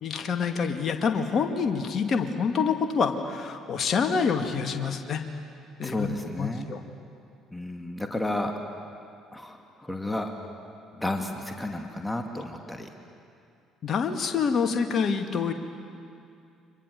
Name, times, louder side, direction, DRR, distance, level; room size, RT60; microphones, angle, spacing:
voice 1, 0.0-5.2 5.8-6.8 13.8-15.5, left 6 dB, 45° left, 6 dB, 2.3 m, -27 dB
voice 2, 5.8-6.7 7.5-8.5 9.3-10.3 11.0-12.9, left 1 dB, 10° left, 3 dB, 2.5 m, -32 dB
30.0 x 25.5 x 7.2 m, 2.4 s
figure-of-eight pair, 50°, 0 cm